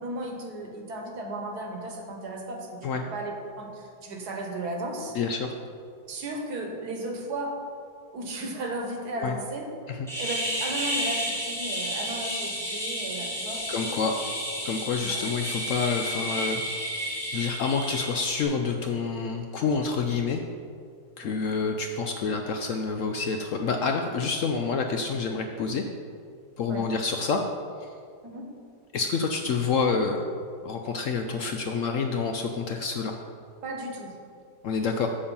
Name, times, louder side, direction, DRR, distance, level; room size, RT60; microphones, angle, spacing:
voice 1, 0.0-5.2 6.1-7.5 8.1-9.7 10.2-13.6 15.1-15.3 21.2-21.5 26.7-26.8 28.2-28.5 33.6-34.1, right 2 dB, 70° right, 2 dB, 1.6 m, -35 dB
voice 2, 5.1-5.5 9.2-9.4 9.9-10.1 13.7-14.1 14.6-16.6 17.3-20.4 21.2-25.8 26.6-27.4 27.8-27.9 28.9-30.3 30.6-33.2 34.6-35.1, left 5 dB, 70° left, 4 dB, 0.8 m, -28 dB
sound 1, 10.1-18.4, equal, ahead, 1.4 m, -31 dB
7.0 x 7.0 x 5.4 m, 2.3 s
omnidirectional pair, 1.8 m